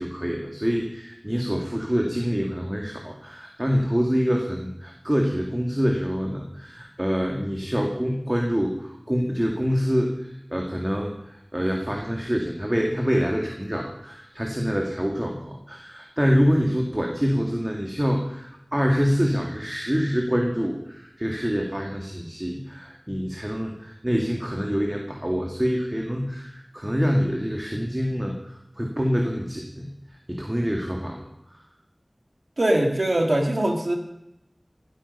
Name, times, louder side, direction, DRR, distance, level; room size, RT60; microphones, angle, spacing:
voice 1, 0.0-29.9 30.3-31.6, equal, 20° right, 1 dB, 2.1 m, -26 dB
voice 2, 32.6-34.0, right 1 dB, 75° right, 3 dB, 2.6 m, -22 dB
17.0 x 13.0 x 5.5 m, 0.83 s
wide cardioid pair, 40°, 0 cm